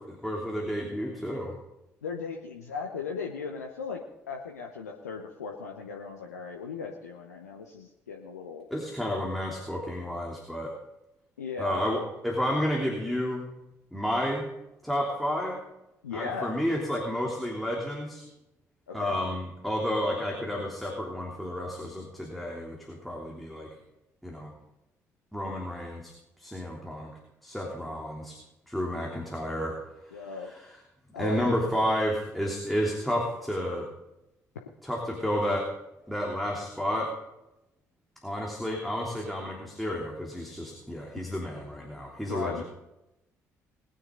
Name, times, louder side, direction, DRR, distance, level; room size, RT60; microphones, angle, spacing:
voice 1, 0.1-1.5 8.7-10.7 11.6-13.5 13.9-14.4 14.8-15.6 16.1-18.2 18.9-23.7 24.2-24.5 25.3-26.1 26.4-27.1 27.4-28.4 28.7-29.8 30.1-30.7 31.2-33.9 34.8-35.7 36.1-37.1 38.2-42.6, equal, ahead, -2 dB, 3.2 m, -31 dB
voice 2, 2.0-4.0 4.3-8.7 11.4-11.9 16.0-16.5 18.9-19.2 28.9-29.1 30.1-30.5 31.1-31.7 42.3-42.6, left 5 dB, 85° left, 2 dB, 0.9 m, -37 dB
20.5 x 9.9 x 3.8 m, 0.92 s
figure-of-eight pair, 45°, 8 cm